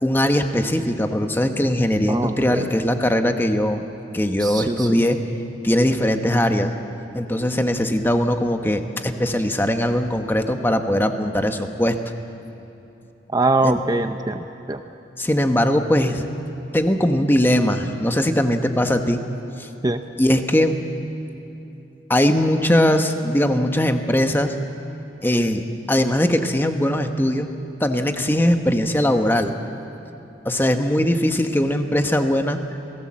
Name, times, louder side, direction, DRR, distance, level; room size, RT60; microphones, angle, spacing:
voice 1, 0.0-3.9 4.1-5.2 5.6-6.7 7.1-12.0 13.6-13.8 15.2-16.2 16.7-19.2 19.6-19.7 20.2-20.8 22.1-24.5 25.2-27.5 27.8-29.6 30.4-32.6, left 1 dB, 10° left, 6 dB, 1.1 m, -20 dB
voice 2, 2.1-2.7 4.4-5.0 13.3-14.8 19.8-20.0, right 2 dB, 20° right, 7 dB, 0.6 m, -23 dB
28.5 x 18.0 x 7.5 m, 2.8 s
head